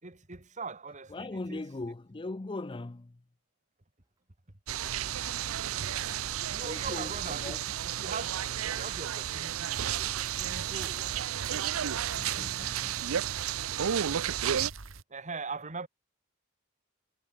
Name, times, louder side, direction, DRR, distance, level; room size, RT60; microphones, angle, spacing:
voice 1, 0.0-1.6 4.5-4.6 6.5-7.6 7.8-11.1 15.1-15.9, right 4 dB, 35° right, 2.1 m, -41 dB
voice 2, 1.1-3.2 6.6-7.2 7.4-7.6 12.2-13.0 14.0-14.2, left 2 dB, 25° left, 0.5 m, -40 dB
sound 1, 4.2-4.3 4.8-5.2 6.1-6.6 7.2-7.8 8.7-9.3 9.9-10.4 10.6-11.5, right 2 dB, 15° right, 6.6 m, -58 dB
sound 2, 4.7-14.7, right 10 dB, 90° right, 0.6 m, -32 dB
sound 3, 9.7-15.0, right 4 dB, 65° right, 1.7 m, -49 dB
head